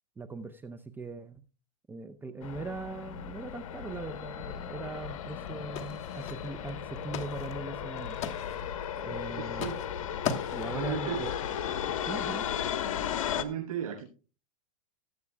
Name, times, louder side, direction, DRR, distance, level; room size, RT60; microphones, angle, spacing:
voice 1, 0.2-1.4 1.9-8.2 9.0-9.8 10.5-11.3 12.0-12.5, right 3 dB, 10° right, 8 dB, 0.6 m, -40 dB
sound 1, 2.4-13.4, left 9 dB, 70° left, 1.1 m, -35 dB
sound 2, 5.5-5.6 5.8-6.7 7.0-7.5 7.8-8.7 9.5-9.9 10.2-10.8, left 7 dB, 35° left, 1.3 m, -37 dB
voice 2, 9.4-9.8 10.7-11.2 13.3-14.1, right 9 dB, 80° right, 0 dB, 6.6 m, -35 dB
20.0 x 8.1 x 2.3 m, 0.36 s
hypercardioid pair, 120°, 18 cm